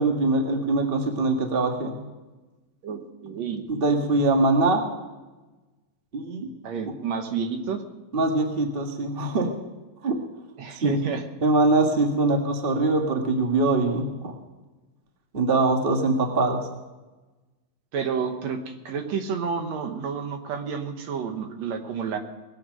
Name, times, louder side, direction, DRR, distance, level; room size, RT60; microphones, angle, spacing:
voice 1, 0.0-1.9 3.7-4.8 6.1-6.5 8.1-9.5 10.0-10.1 10.8-11.0 11.4-14.3 15.3-16.6, right 2 dB, 35° right, 3 dB, 0.9 m, -22 dB
voice 2, 2.8-3.6 6.6-7.8 10.6-11.2 17.9-22.2, right 6 dB, 65° right, 6 dB, 2.1 m, -30 dB
20.0 x 8.6 x 6.5 m, 1.2 s
omnidirectional pair, 3.9 m